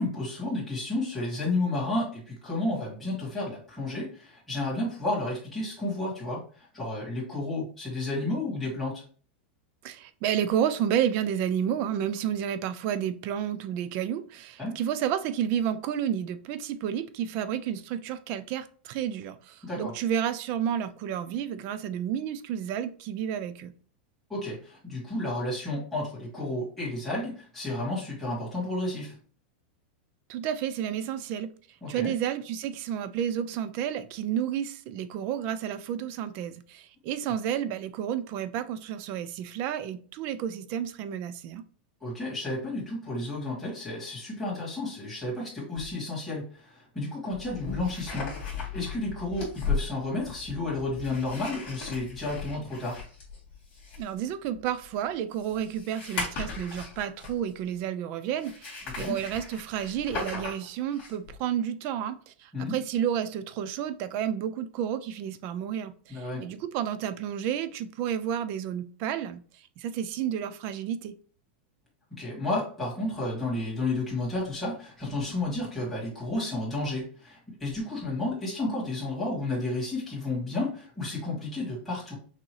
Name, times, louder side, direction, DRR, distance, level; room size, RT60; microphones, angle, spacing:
voice 1, 0.0-9.0 14.6-14.8 19.6-19.9 24.3-29.1 31.8-32.1 42.0-48.3 48.7-53.0 58.9-59.2 62.5-62.8 66.1-66.4 72.1-82.1, left 2 dB, ahead, 2.2 m, -32 dB
voice 2, 9.8-23.7 30.3-31.5 31.9-41.6 54.0-71.1, right 9 dB, 35° right, 0.4 m, -31 dB
sound 1, 45.8-45.9 47.3-57.6 58.4-61.4, left 4 dB, 30° left, 1.9 m, -37 dB
6.0 x 2.7 x 3.2 m
supercardioid pair, 170°, 6 cm